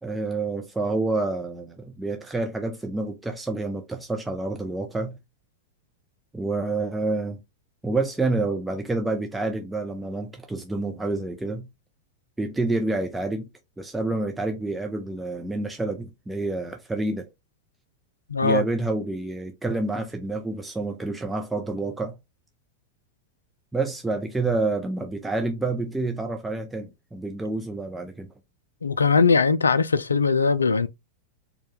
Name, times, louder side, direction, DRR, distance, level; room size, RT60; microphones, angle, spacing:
voice 1, 0.0-5.2 6.3-7.4 7.8-11.7 12.4-13.5 13.8-17.3 18.4-22.2 23.7-28.3, right 2 dB, 5° right, 0.6 m, -28 dB
voice 2, 18.3-18.6 28.8-30.9, left 4 dB, 75° left, 0.4 m, -20 dB
4.4 x 2.3 x 3.3 m
figure-of-eight pair, 90°, 0 cm